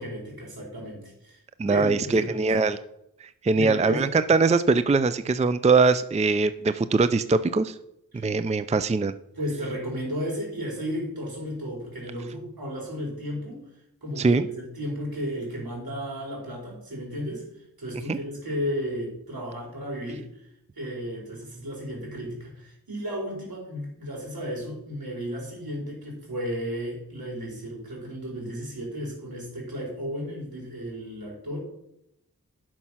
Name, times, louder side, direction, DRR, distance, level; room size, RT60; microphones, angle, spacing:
voice 1, 0.0-1.4 1.7-2.5 3.5-4.1 8.1-8.3 9.3-13.6 14.0-20.5 20.8-31.6, equal, 70° right, -2 dB, 4.6 m, -34 dB
voice 2, 1.6-2.8 3.2-7.7 8.2-9.1 14.2-14.5 18.1-18.2, right 4 dB, 20° right, 13 dB, 0.5 m, -22 dB
11.0 x 6.0 x 5.7 m, 0.81 s
cardioid pair, 50°, 37 cm